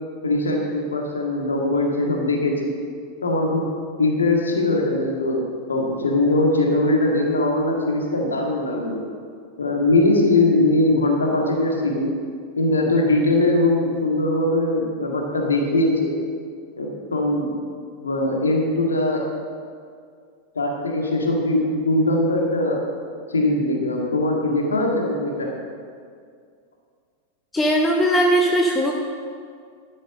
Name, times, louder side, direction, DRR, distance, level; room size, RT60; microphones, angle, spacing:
voice 1, 0.2-2.7 3.2-3.7 4.0-9.0 9.6-12.1 12.6-16.2 16.8-17.5 18.0-19.3 20.6-22.8 23.3-25.6, left 2 dB, 75° left, 0 dB, 1.9 m, -21 dB
voice 2, 27.5-28.9, right 1 dB, 10° left, 0 dB, 0.9 m, -19 dB
12.0 x 7.7 x 6.3 m, 2.2 s
figure-of-eight pair, 90°, 0 cm